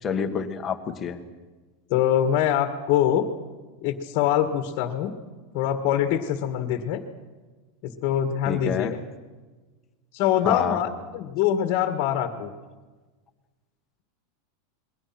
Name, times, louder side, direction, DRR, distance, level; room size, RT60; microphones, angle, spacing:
voice 1, 0.0-1.2 8.4-8.9 10.4-10.8, left 6 dB, 20° left, 6 dB, 1.6 m, -28 dB
voice 2, 1.9-3.3 3.8-5.1 5.5-7.0 7.8-9.0 10.1-12.5, left 10 dB, 40° left, 7 dB, 1.9 m, -24 dB
28.0 x 22.0 x 6.1 m, 1.3 s
supercardioid pair, 170°, 0 cm